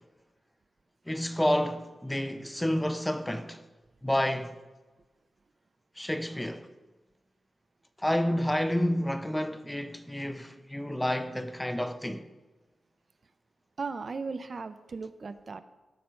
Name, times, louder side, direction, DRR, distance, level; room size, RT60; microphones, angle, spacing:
voice 1, 1.1-3.6 4.0-4.6 6.0-6.7 8.0-12.3, left 1 dB, 5° left, 0.5 m, -29 dB
voice 2, 13.8-15.6, right 4 dB, 40° right, 0.5 m, -37 dB
13.0 x 5.8 x 6.4 m
wide cardioid pair, 145°, 0 cm